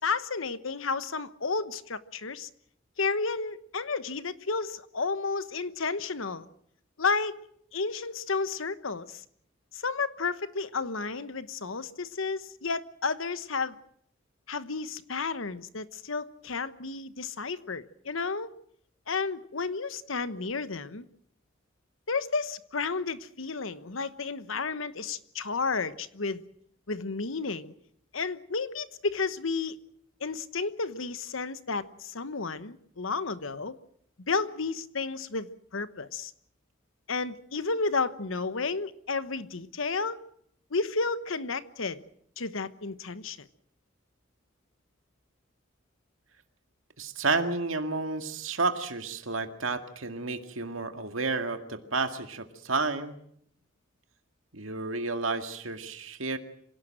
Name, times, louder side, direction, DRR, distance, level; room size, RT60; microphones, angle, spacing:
voice 1, 0.0-2.5 3.0-6.5 7.0-9.2 9.7-13.7 14.5-18.5 19.1-21.1 22.1-26.4 26.9-27.7 28.1-29.8 30.2-33.8 34.3-36.3 37.1-40.2 40.7-42.0 42.4-43.5, left 4 dB, 85° left, 1.1 m, -32 dB
voice 2, 47.0-53.2 54.5-56.4, right 3 dB, 85° right, 2.1 m, -31 dB
26.0 x 17.5 x 7.7 m
head